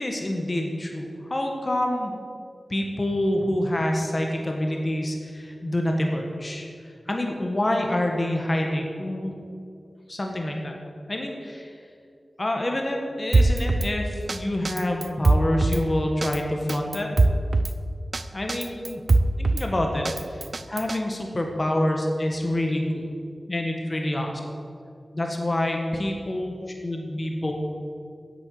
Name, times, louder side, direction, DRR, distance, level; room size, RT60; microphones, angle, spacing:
voice 1, 0.0-2.1 2.7-6.7 7.1-9.4 10.1-10.7 11.1-11.8 12.4-17.1 18.3-19.0 19.4-23.0 23.5-24.4 25.1-26.5 26.8-27.5, left 1 dB, 35° left, 2 dB, 1.4 m, -27 dB
Drum kit, 13.3-13.9 14.3-14.4 14.6-15.8 16.2-16.4 16.7-17.7 18.1-18.2 18.5-19.7 20.0-21.0, right 2 dB, 60° right, 0.5 m, -21 dB
8.6 x 8.0 x 7.7 m, 2.4 s
wide cardioid pair, 60°, 0 cm